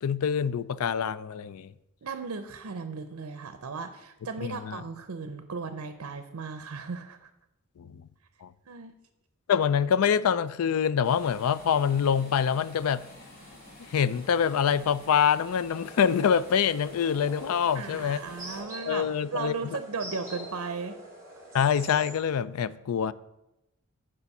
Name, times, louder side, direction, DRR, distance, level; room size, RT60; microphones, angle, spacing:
voice 1, 0.0-1.7 4.4-4.8 7.8-8.0 8.4-8.5 9.5-13.1 13.9-18.2 18.9-19.5 21.5-23.1, left 7 dB, 85° left, 0.4 m, -25 dB
voice 2, 2.0-7.3 8.7-8.9 17.7-21.0, right 4 dB, 80° right, 0.6 m, -36 dB
sound 1, 11.0-18.6, left 1 dB, 45° left, 2.9 m, -50 dB
sound 2, 15.7-22.1, right 1 dB, 15° right, 2.2 m, -45 dB
6.9 x 5.1 x 7.1 m
head